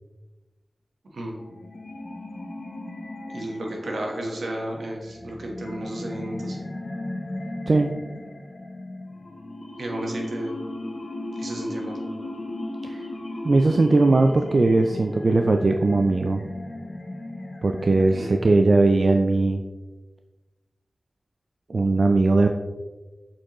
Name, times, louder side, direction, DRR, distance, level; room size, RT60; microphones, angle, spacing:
voice 1, 1.0-1.4 3.3-6.6 9.8-10.5 11.4-12.0 18.1-18.4, right 1 dB, 85° right, 0 dB, 1.2 m, -33 dB
sound 1, 1.3-19.3, left 1 dB, 55° left, 0.8 m, -36 dB
voice 2, 13.4-16.4 17.6-19.6 21.7-22.5, right 3 dB, 60° right, 5 dB, 0.4 m, -19 dB
7.3 x 4.4 x 3.0 m, 1.2 s
wide cardioid pair, 65°, 0 cm